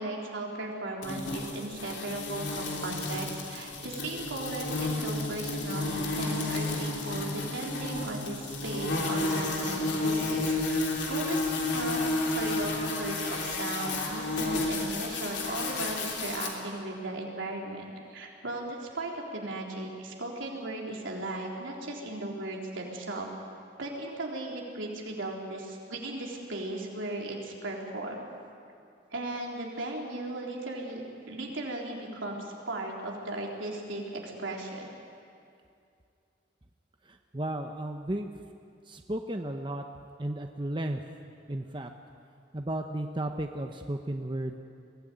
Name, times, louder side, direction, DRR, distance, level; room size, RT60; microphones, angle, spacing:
voice 1, 0.0-10.8 11.1-12.1 12.3-23.3 23.8-28.2 29.1-31.0 31.3-34.9, right 2 dB, 85° right, -1 dB, 3.8 m, -37 dB
sound 1, 1.0-16.5, left 2 dB, 65° left, 3.3 m, -31 dB
voice 2, 37.1-38.3 38.9-39.8 40.2-41.0 41.5-41.9 42.5-44.6, right 1 dB, 25° right, 5 dB, 0.8 m, -34 dB
22.5 x 16.0 x 9.2 m, 2.4 s
head